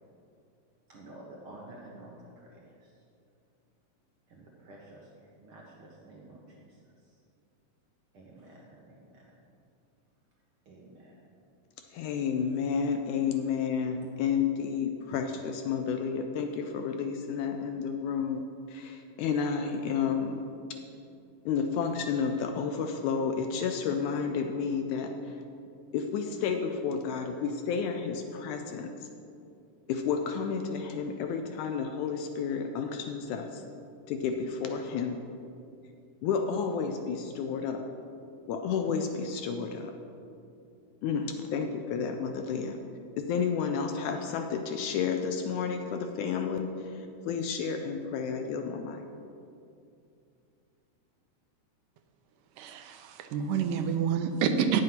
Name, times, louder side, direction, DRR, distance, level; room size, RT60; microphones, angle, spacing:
voice 1, 0.9-2.9 4.3-6.8 7.1-7.2 8.1-9.4 10.6-11.2, right 1 dB, 65° right, -4 dB, 1.4 m, -51 dB
voice 2, 11.9-18.4 18.7-20.4 21.5-25.4 25.9-29.1 29.9-33.7 34.1-35.2 36.2-37.9 38.5-39.9 41.0-42.8 43.1-49.0, left 6 dB, 80° left, 5 dB, 1.9 m, -31 dB
voice 3, 52.6-54.8, right 7 dB, 85° right, 7 dB, 2.2 m, -28 dB
9.2 x 7.6 x 5.8 m, 2.5 s
omnidirectional pair, 3.8 m